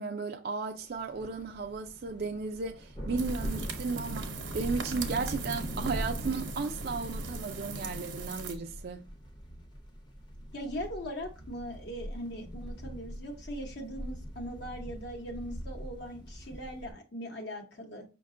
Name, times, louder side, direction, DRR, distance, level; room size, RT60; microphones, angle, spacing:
voice 1, 0.0-9.1, right 4 dB, 50° right, 0.4 m, -35 dB
sound 1, 0.9-16.9, equal, 25° left, 0.7 m, -41 dB
sound 2, 3.2-8.5, right 3 dB, 70° right, 0.8 m, -40 dB
voice 2, 10.5-18.0, equal, 60° left, 0.8 m, -40 dB
5.6 x 2.2 x 3.6 m
head